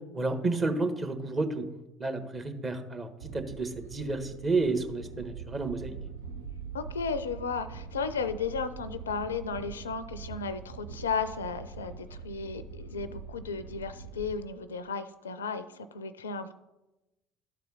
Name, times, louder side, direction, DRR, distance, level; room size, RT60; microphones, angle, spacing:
voice 1, 0.1-1.6 2.0-6.0, right 3 dB, 25° right, 5 dB, 1.2 m, -31 dB
sound 1, 3.2-14.3, right 6 dB, 85° right, 0.8 m, -43 dB
voice 2, 6.7-16.5, left 5 dB, 80° left, 13 dB, 0.4 m, -34 dB
12.0 x 4.2 x 5.5 m, 0.99 s
figure-of-eight pair, 60°, 0 cm